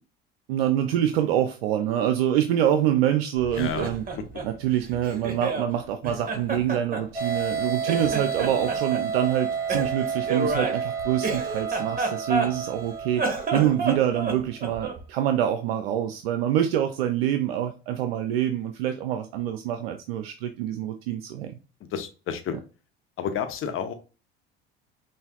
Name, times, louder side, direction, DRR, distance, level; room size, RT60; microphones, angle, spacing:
voice 1, 0.5-4.0 4.4-13.2 13.5-21.6 22.5-22.6, right 11 dB, 75° right, 0.5 m, -25 dB
Laughter, 3.4-5.7 6.0-7.6 7.8-9.0 9.7-12.8 13.1-15.0, right 3 dB, 30° right, 1.4 m, -30 dB
voice 2, 3.6-3.9 21.9-22.5 23.2-23.9, left 8 dB, 45° left, 0.9 m, -30 dB
sound 1, 7.1-14.1, right 6 dB, 10° right, 1.1 m, -30 dB
5.5 x 2.6 x 2.4 m
hypercardioid pair, 70°, 30 cm